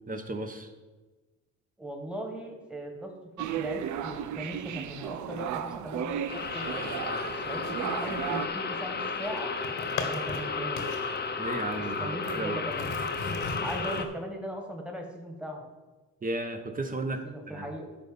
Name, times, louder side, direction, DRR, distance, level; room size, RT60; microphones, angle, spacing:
voice 1, 0.1-0.7 11.4-12.6 16.2-17.7, right 2 dB, 25° right, 6 dB, 1.2 m, -34 dB
voice 2, 1.8-3.1 3.4-9.5 10.1-11.1 12.0-12.9 13.6-15.7 17.2-17.9, equal, 5° right, 2 dB, 1.8 m, -39 dB
sound 1, 3.4-8.5, right 9 dB, 70° right, 0.6 m, -34 dB
sound 2, 6.3-14.0, left 4 dB, 35° left, 0.9 m, -33 dB
sound 3, 8.8-10.4 10.8-11.2 11.5-12.4 12.7-14.0, left 4 dB, 85° left, 1.6 m, -38 dB
10.5 x 4.2 x 7.0 m, 1.2 s
cardioid pair, 90°, 30 cm